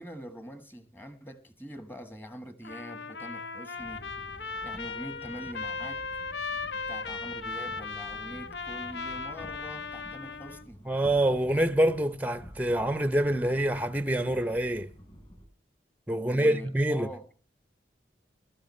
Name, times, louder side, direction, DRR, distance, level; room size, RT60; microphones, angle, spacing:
voice 1, 0.0-4.1 4.6-6.2 6.9-10.8 16.3-17.3, equal, 10° left, 1.5 m, -44 dB
Trumpet, 2.6-10.7, left 4 dB, 80° left, 1.0 m, -37 dB
sound 1, 3.8-15.5, equal, 30° left, 4.4 m, -50 dB
voice 2, 10.9-14.9 16.1-17.1, right 1 dB, 10° right, 0.6 m, -26 dB
21.0 x 13.0 x 3.2 m
head